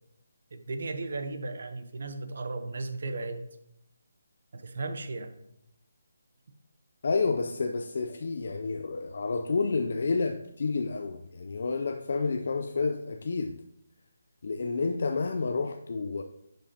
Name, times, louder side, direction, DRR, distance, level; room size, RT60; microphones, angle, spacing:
voice 1, 0.5-3.5 4.5-5.3, right 3 dB, 60° right, 0.9 m, -35 dB
voice 2, 7.0-13.6 14.4-16.2, left 4 dB, 55° left, 0.5 m, -30 dB
10.5 x 5.2 x 2.9 m
figure-of-eight pair, 160°, 0 cm